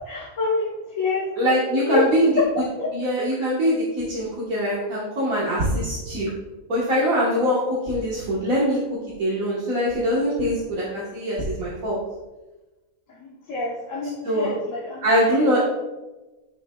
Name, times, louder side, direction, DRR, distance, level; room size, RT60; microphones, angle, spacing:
voice 1, 0.0-2.0 2.8-2.9 13.2-15.6, left 2 dB, 70° left, -6 dB, 1.5 m, -28 dB
voice 2, 1.4-2.3 2.9-6.3 6.7-8.8 9.2-12.0 14.2-14.5 15.0-15.6, equal, 85° right, -7 dB, 1.9 m, -23 dB
9.6 x 7.0 x 2.3 m, 1.1 s
omnidirectional pair, 1.4 m